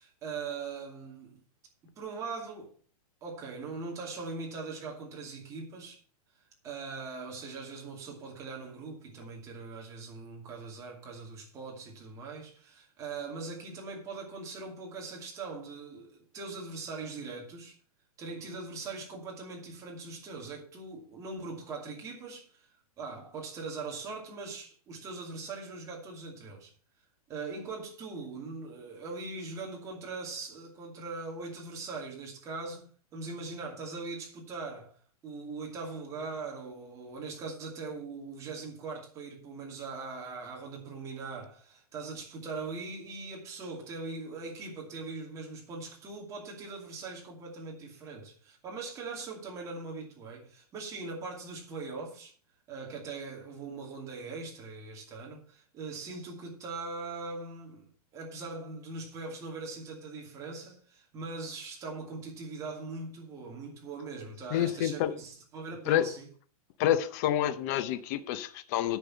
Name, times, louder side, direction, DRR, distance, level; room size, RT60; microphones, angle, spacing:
voice 1, 0.0-1.4 2.0-2.7 3.2-6.0 6.6-17.7 18.2-22.7 23.0-26.7 27.3-32.8 33.1-35.0 35.2-52.3 52.7-66.3, right 4 dB, 15° right, 2.6 m, -41 dB
voice 2, 64.5-65.1 65.9-66.1 66.8-69.0, left 11 dB, 25° left, 0.6 m, -28 dB
10.0 x 5.5 x 7.6 m
hypercardioid pair, 170°, 19 cm